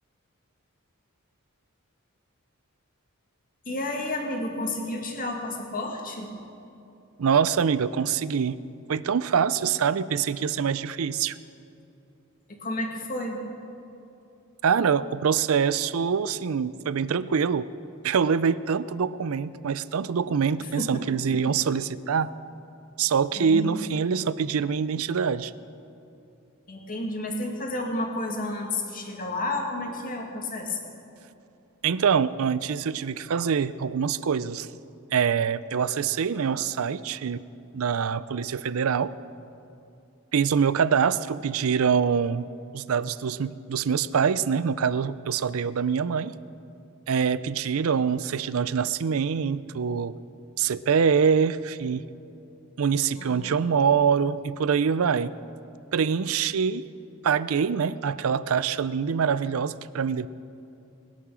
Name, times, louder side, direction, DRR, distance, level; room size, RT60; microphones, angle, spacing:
voice 1, 3.7-6.3 12.5-13.4 20.6-21.4 23.4-23.8 26.7-30.8 47.8-47.9 53.2-53.7, left 2 dB, 40° left, 1 dB, 2.1 m, -31 dB
voice 2, 7.2-8.6 8.9-11.4 14.6-17.7 18.0-22.3 23.0-25.5 31.8-34.7 35.1-37.4 37.7-39.1 40.3-42.5 42.7-46.3 47.1-50.1 50.6-52.0 52.8-55.3 55.9-56.9 57.2-60.3, right 6 dB, 75° right, 16 dB, 0.5 m, -24 dB
20.5 x 9.7 x 6.2 m, 2.7 s
head